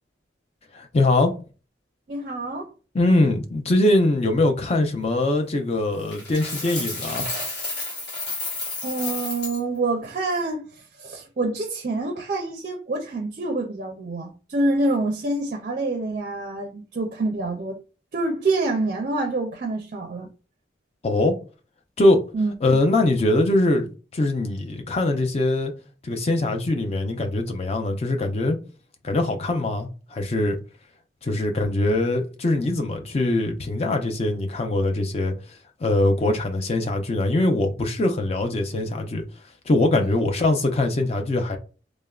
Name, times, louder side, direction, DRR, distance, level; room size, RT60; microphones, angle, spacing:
voice 1, 0.7-1.3 2.9-7.3 21.0-21.3 22.0-22.2 22.6-25.7 26.0-28.6 29.0-30.6 31.2-35.3 35.8-39.2 39.7-41.6, left 2 dB, 35° left, 0.5 m, -22 dB
voice 2, 2.1-2.7 8.8-17.8 18.1-20.3 22.3-22.5, right 2 dB, 45° right, 0.4 m, -26 dB
Coin (dropping), 6.1-9.6, left 2 dB, 60° left, 1.1 m, -31 dB
3.3 x 2.0 x 2.3 m
head